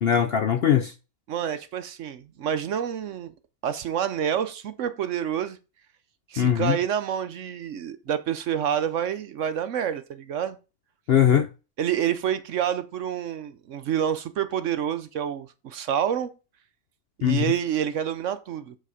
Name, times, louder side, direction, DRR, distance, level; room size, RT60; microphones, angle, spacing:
voice 1, 0.0-0.9 6.4-6.8 11.1-11.5 17.2-17.5, left 9 dB, 65° left, 0.6 m, -20 dB
voice 2, 1.3-3.3 3.6-5.6 6.3-10.6 11.8-16.3 17.2-18.8, right 9 dB, 65° right, 0.9 m, -28 dB
8.0 x 4.1 x 4.9 m
omnidirectional pair, 1.6 m